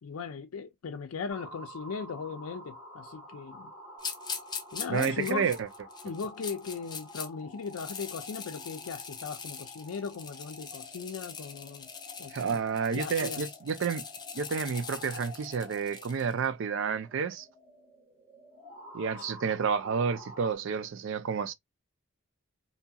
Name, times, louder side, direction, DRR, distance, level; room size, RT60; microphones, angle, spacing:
voice 1, 0.0-3.7 4.7-5.6 6.0-11.9 12.2-12.6 12.9-13.4 19.2-19.3, left 5 dB, 75° left, 0.4 m, -38 dB
sound 1, 1.3-20.6, left 1 dB, 10° right, 1.3 m, -50 dB
sound 2, 4.0-7.3 7.6-16.3, left 6 dB, 20° left, 0.5 m, -41 dB
voice 2, 4.9-5.6 12.3-14.0 14.3-17.5 18.9-21.5, right 6 dB, 60° right, 0.4 m, -30 dB
2.7 x 2.7 x 2.3 m
head